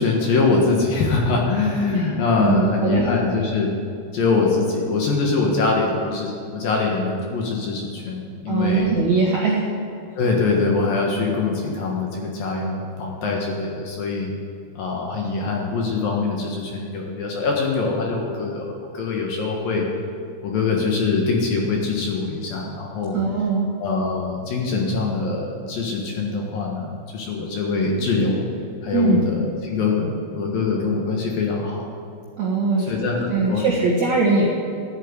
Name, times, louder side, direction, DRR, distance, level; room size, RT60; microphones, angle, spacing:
voice 1, 0.0-3.7 4.1-8.9 10.2-14.3 14.8-19.9 20.4-23.2 23.8-28.4 28.8-31.8 32.9-33.6, left 3 dB, 60° left, -1 dB, 2.7 m, -23 dB
voice 2, 2.4-3.1 8.5-9.6 23.1-23.7 28.9-29.2 32.4-34.5, right 3 dB, 65° right, -3 dB, 1.9 m, -21 dB
13.0 x 9.0 x 9.7 m, 2.4 s
omnidirectional pair, 5.4 m